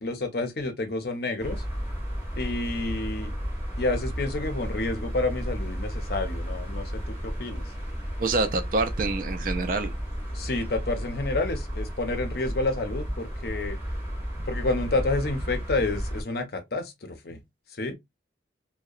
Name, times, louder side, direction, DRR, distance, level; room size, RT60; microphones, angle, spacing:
voice 1, 0.0-1.6 2.3-3.3 3.8-7.7 10.3-13.8 14.5-17.4 17.7-18.0, left 2 dB, 55° left, 0.6 m, -29 dB
sound 1, 1.4-16.2, equal, 10° right, 1.1 m, -33 dB
voice 2, 8.2-9.9, right 3 dB, 45° right, 0.3 m, -26 dB
2.8 x 2.1 x 2.3 m
head